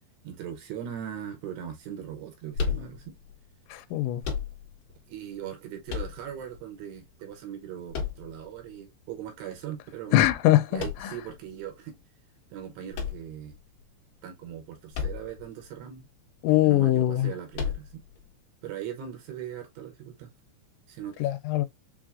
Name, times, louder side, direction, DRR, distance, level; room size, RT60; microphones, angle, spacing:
voice 1, 0.2-3.2 5.1-10.2 10.7-12.0 12.5-13.6 14.2-16.1 16.6-18.0 18.6-20.3 20.9-21.3, right 9 dB, 75° right, 2.7 m, -39 dB
sound 1, 2.5-3.3 4.2-4.9 5.9-6.6 7.9-8.7 10.8-11.3 12.9-13.8 14.9-15.5 15.8-15.9 17.5-18.2, left 6 dB, 65° left, 2.2 m, -33 dB
voice 2, 3.7-4.2 10.1-10.8 16.4-17.3 21.2-21.7, left 14 dB, 85° left, 2.9 m, -22 dB
7.2 x 2.5 x 2.4 m
omnidirectional pair, 5.3 m